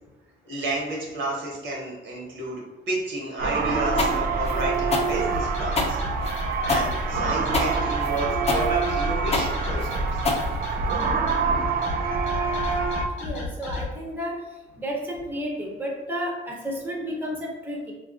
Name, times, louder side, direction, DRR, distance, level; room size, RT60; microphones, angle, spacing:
voice 1, 0.4-6.0 6.6-10.2, right 2 dB, 70° right, -3 dB, 1.1 m, -31 dB
sound 1, 3.4-13.1, right 5 dB, 50° right, 0.4 m, -26 dB
sound 2, 4.0-11.0, left 3 dB, 30° left, 0.5 m, -27 dB
sound 3, 5.3-13.9, left 3 dB, 85° left, 0.7 m, -33 dB
voice 2, 13.2-14.3 14.8-17.9, equal, 10° right, -2 dB, 0.7 m, -31 dB
3.3 x 2.4 x 2.4 m, 1.1 s
cardioid pair, 90°, 20 cm